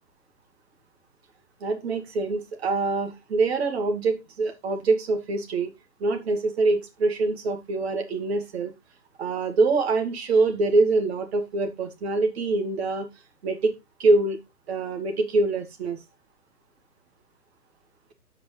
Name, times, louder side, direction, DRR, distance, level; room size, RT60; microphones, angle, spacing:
voice 1, 1.6-5.7 6.0-8.7 9.2-13.1 13.4-13.7 14.0-14.4 14.7-16.0, right 3 dB, 40° right, 6 dB, 2.4 m, -24 dB
13.0 x 5.3 x 3.4 m, 0.22 s
hypercardioid pair, 150°, 47 cm